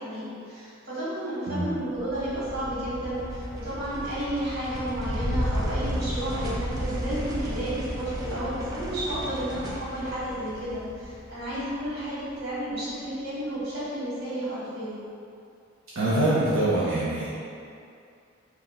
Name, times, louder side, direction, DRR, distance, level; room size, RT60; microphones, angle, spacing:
voice 1, 0.0-15.0, right 1 dB, 55° right, -11 dB, 1.5 m, -32 dB
sound 1, 1.9-12.5, equal, 20° right, 0.3 m, -33 dB
voice 2, 16.0-17.3, right 1 dB, 85° right, -10 dB, 0.6 m, -24 dB
2.7 x 2.4 x 3.5 m, 2.5 s
head